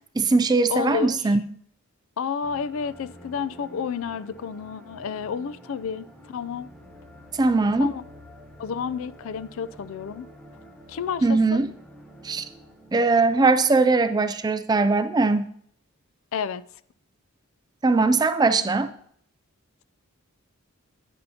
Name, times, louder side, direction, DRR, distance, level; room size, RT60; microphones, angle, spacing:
voice 1, 0.2-1.4 7.4-7.9 11.2-11.7 12.2-12.4 12.9-15.5 17.8-18.9, right 3 dB, 20° right, 0.3 m, -20 dB
voice 2, 0.7-1.2 2.2-6.7 7.8-8.0 8.6-10.3 10.9-11.6 16.3-16.6, left 6 dB, 65° left, 0.3 m, -30 dB
sound 1, 2.4-14.3, equal, 5° left, 0.8 m, -48 dB
9.5 x 9.3 x 2.8 m
head